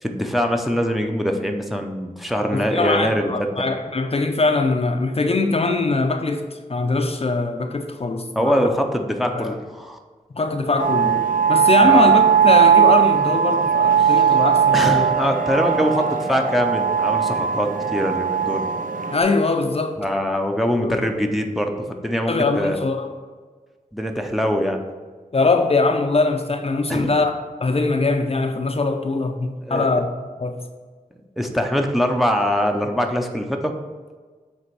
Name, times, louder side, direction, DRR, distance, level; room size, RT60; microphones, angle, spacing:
voice 1, 0.0-3.7 8.3-10.0 11.8-12.1 14.0-14.2 14.7-18.6 20.0-22.9 23.9-24.8 26.9-27.2 29.7-30.0 31.4-33.7, equal, ahead, 3 dB, 0.6 m, -23 dB
voice 2, 2.5-6.4 6.7-8.6 9.3-9.6 10.3-11.2 11.5-15.1 19.1-20.0 20.8-21.0 22.3-23.1 25.3-27.4 27.6-30.1 30.4-30.6, left 3 dB, 40° left, 5 dB, 0.5 m, -22 dB
sound 1, 10.8-19.2, right 8 dB, 65° right, 0.6 m, -18 dB
7.8 x 3.4 x 4.6 m, 1.4 s
wide cardioid pair, 95°, 15 cm